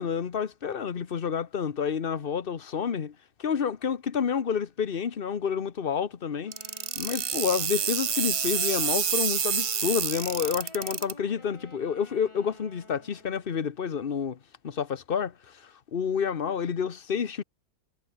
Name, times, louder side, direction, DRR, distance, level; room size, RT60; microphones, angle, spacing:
voice 1, 0.0-6.5 7.0-14.4 14.6-17.4, left 7 dB, 40° left, 1.1 m, -29 dB
Wind instrument woodwind instrument, 6.4-13.6, left 1 dB, 20° left, 3.8 m, -49 dB
sound 1, 6.5-11.1, right 7 dB, 45° right, 1.1 m, -28 dB
omnidirectional pair, 1.5 m